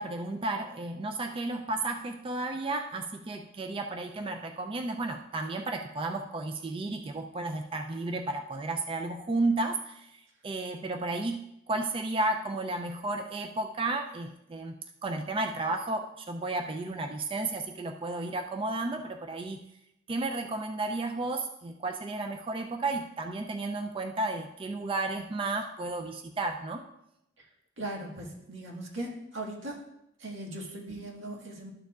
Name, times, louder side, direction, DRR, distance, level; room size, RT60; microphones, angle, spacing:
voice 1, 0.0-10.1 10.4-19.6 20.1-26.9, right 2 dB, 30° right, 5 dB, 0.4 m, -33 dB
voice 2, 27.8-29.8 30.2-31.7, right 1 dB, 80° right, -2 dB, 1.8 m, -39 dB
12.5 x 6.8 x 2.4 m, 0.83 s
head